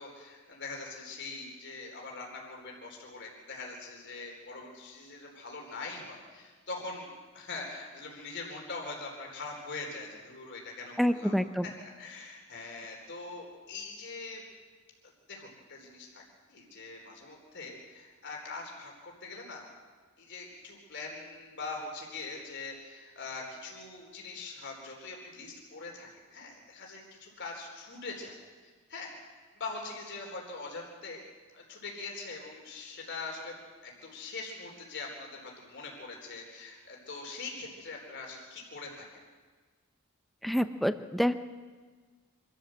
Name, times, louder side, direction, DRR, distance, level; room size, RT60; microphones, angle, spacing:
voice 1, 0.0-11.3 11.6-14.4 15.0-16.2 16.5-19.6 20.2-29.1 29.5-31.2 31.5-33.5 33.8-39.0, left 3 dB, 55° left, 0 dB, 4.0 m, -43 dB
voice 2, 11.0-11.7 40.4-41.3, equal, ahead, 10 dB, 0.6 m, -27 dB
25.0 x 13.5 x 7.8 m, 1.4 s
head